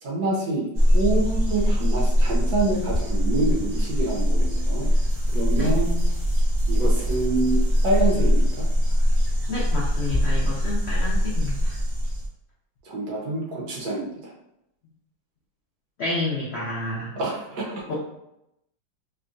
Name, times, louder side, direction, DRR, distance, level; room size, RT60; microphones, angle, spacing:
voice 1, 0.0-4.9 5.3-6.0 6.7-7.6 7.8-8.7 12.8-14.2 17.1-18.0, right 2 dB, 65° right, -4 dB, 1.3 m, -26 dB
sound 1, 0.7-12.3, equal, 50° right, 0.9 m, -22 dB
voice 2, 9.5-11.8 16.0-17.2 17.9-18.0, left 2 dB, 65° left, -6 dB, 0.6 m, -29 dB
3.6 x 2.2 x 2.5 m, 0.84 s
omnidirectional pair, 1.8 m